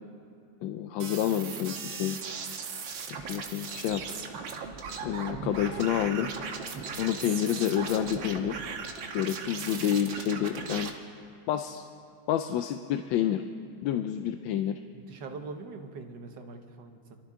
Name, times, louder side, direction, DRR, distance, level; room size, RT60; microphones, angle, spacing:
voice 1, 0.6-2.2 3.1-4.0 5.0-6.3 7.0-8.6 9.1-10.9 11.5-11.8 12.3-13.4 13.8-14.8, left 10 dB, 85° left, 8 dB, 1.3 m, -29 dB
sound 1, 1.0-10.9, right 5 dB, 85° right, 1.9 m, -38 dB
voice 2, 7.3-7.7 14.9-17.2, right 4 dB, 65° right, 5 dB, 1.7 m, -43 dB
26.5 x 13.0 x 3.7 m, 2.6 s
omnidirectional pair, 2.1 m